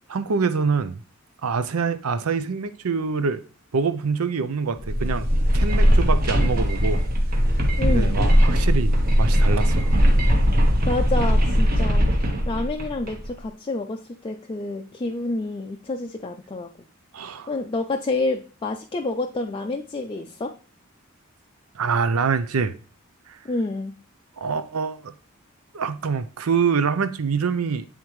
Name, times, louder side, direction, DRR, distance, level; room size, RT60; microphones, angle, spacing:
voice 1, 0.1-1.0 1.4-3.4 3.7-5.3 5.5-7.0 7.9-9.9 17.1-17.5 21.7-22.7 23.3-23.4 24.4-25.1 25.7-27.8, right 5 dB, 90° right, 0.6 m, -25 dB
sound 1, 4.8-13.3, equal, 45° right, 1.0 m, -19 dB
voice 2, 7.8-8.2 10.9-12.1 12.5-16.7 17.2-20.6 23.4-24.0, left 2 dB, 25° left, 0.4 m, -28 dB
8.8 x 3.6 x 3.1 m
head